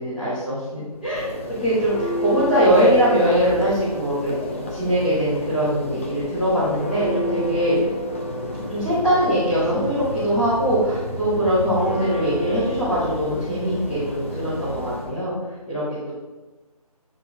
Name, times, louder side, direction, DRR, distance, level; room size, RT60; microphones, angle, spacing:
voice 1, 0.0-1.3 1.6-7.8 8.7-15.3 15.7-16.1, equal, ahead, -16 dB, 1.0 m, -22 dB
Church bell, 0.9-15.2, left 1 dB, 20° left, 0.7 m, -30 dB
9.1 x 4.6 x 4.8 m, 1.2 s
figure-of-eight pair, 160°, 20 cm